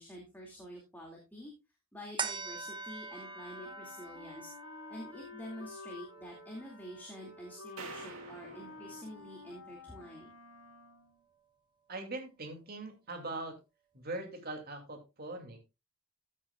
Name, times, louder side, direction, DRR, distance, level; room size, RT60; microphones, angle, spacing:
voice 1, 0.0-1.5 1.9-4.5 4.9-10.3, equal, 10° left, -1 dB, 2.4 m, -48 dB
sound 1, 2.2-8.9 9.4-9.5, right 5 dB, 25° right, 0.9 m, -45 dB
Wind instrument woodwind instrument, 3.1-11.2, left 4 dB, 75° left, 3.1 m, -51 dB
sound 2, 7.8-10.1, right 4 dB, 85° right, 2.2 m, -50 dB
voice 2, 11.9-13.6 13.9-15.6, right 2 dB, 50° right, 4 dB, 2.6 m, -41 dB
14.5 x 8.5 x 2.4 m, 0.25 s
head